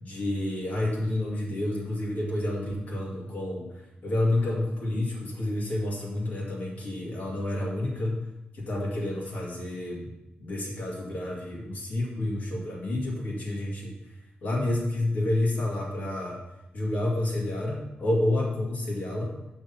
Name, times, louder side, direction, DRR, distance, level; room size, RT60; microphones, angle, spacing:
voice 1, 0.0-3.7 4.0-8.2 8.5-10.1 10.4-13.9 14.4-16.4 16.7-19.3, left 1 dB, 55° left, -3 dB, 2.3 m, -29 dB
6.3 x 6.2 x 5.5 m, 0.94 s
wide cardioid pair, 155°, 3 cm